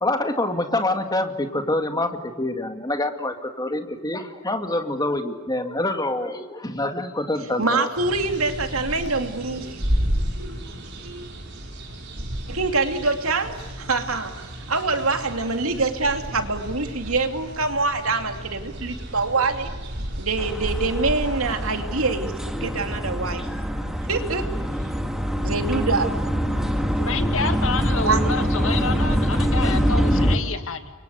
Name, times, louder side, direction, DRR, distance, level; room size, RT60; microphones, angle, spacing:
voice 1, 0.0-7.9, left 2 dB, 20° left, 6 dB, 2.2 m, -26 dB
voice 2, 7.4-9.8 10.4-10.6 11.0-11.3 12.5-14.4 14.7-19.7 20.2-23.5 24.1-24.5 25.4-26.1 28.0-28.4, right 3 dB, 75° right, 6 dB, 2.8 m, -25 dB
sound 1, 7.9-21.8, equal, 55° right, 5.1 m, -32 dB
sound 2, 20.4-30.4, equal, ahead, 2.0 m, -24 dB
voice 3, 27.0-30.9, left 4 dB, 65° left, 8 dB, 2.2 m, -29 dB
30.0 x 24.0 x 8.1 m, 1.4 s
head